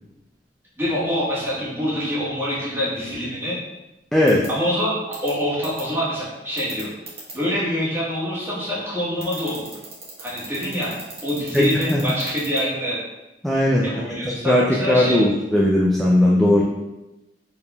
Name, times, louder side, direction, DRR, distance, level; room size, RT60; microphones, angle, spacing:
voice 1, 0.8-3.6 4.5-6.9 7.3-9.8 10.2-10.9 11.2-13.0 13.8-15.3, equal, 15° right, -9 dB, 1.4 m, -25 dB
voice 2, 4.1-4.4 11.5-12.0 13.4-13.9 14.5-16.6, left 1 dB, ahead, -4 dB, 0.4 m, -18 dB
sound 1, 4.3-4.5 5.1-5.3 5.6-5.8 6.6-7.3 9.2-12.6, right 4 dB, 35° right, 1.1 m, -36 dB
4.5 x 3.4 x 2.3 m, 1.0 s
head